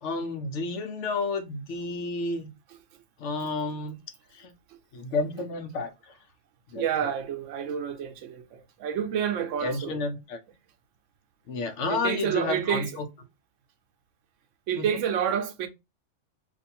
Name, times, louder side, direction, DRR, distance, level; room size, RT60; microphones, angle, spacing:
voice 1, 0.0-2.5 3.2-4.0 4.3-4.5 4.9-5.9 6.7-7.1 9.6-10.4 11.5-13.1 14.8-14.9, left 3 dB, 70° left, 0.9 m, -31 dB
voice 2, 6.7-10.0 11.9-12.9 14.7-15.7, right 8 dB, 75° right, 0.9 m, -29 dB
2.5 x 2.4 x 4.1 m
omnidirectional pair, 1.3 m